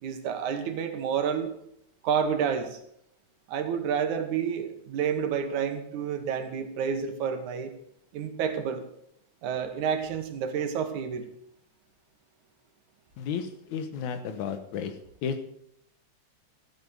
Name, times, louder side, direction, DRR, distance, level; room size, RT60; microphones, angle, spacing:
voice 1, 0.0-1.5 2.0-2.8 3.5-7.7 8.1-8.8 9.4-11.3, right 7 dB, 85° right, 7 dB, 2.7 m, -29 dB
voice 2, 13.2-14.9 15.2-15.4, left 7 dB, 85° left, 9 dB, 2.5 m, -33 dB
12.5 x 8.3 x 6.4 m, 0.74 s
omnidirectional pair, 3.3 m